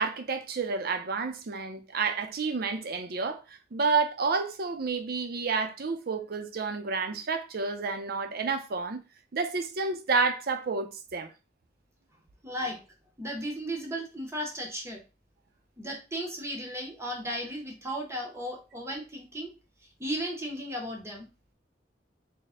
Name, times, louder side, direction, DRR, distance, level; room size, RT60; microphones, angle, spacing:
voice 1, 0.0-9.0 9.3-11.3, right 4 dB, 55° right, 0.5 m, -30 dB
voice 2, 12.4-12.8 13.2-15.0 15.8-19.5 20.0-21.3, equal, 15° right, 0.7 m, -35 dB
3.6 x 2.1 x 4.1 m
head